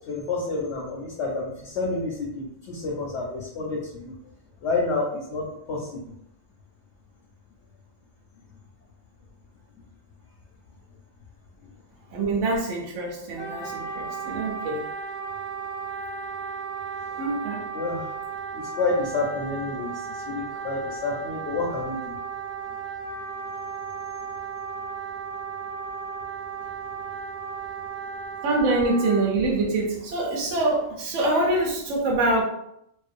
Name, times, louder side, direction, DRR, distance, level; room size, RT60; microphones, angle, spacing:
voice 1, 0.1-4.1 4.6-6.0 17.1-17.3 17.7-18.1 18.5-22.1, left 3 dB, 65° left, -2 dB, 0.8 m, -29 dB
voice 2, 12.1-14.8 17.2-17.6 28.4-32.4, right 2 dB, 70° right, -1 dB, 0.9 m, -25 dB
Wind instrument woodwind instrument, 13.4-29.2, right 5 dB, ahead, 0.7 m, -35 dB
2.5 x 2.1 x 2.4 m, 0.77 s
omnidirectional pair, 1.4 m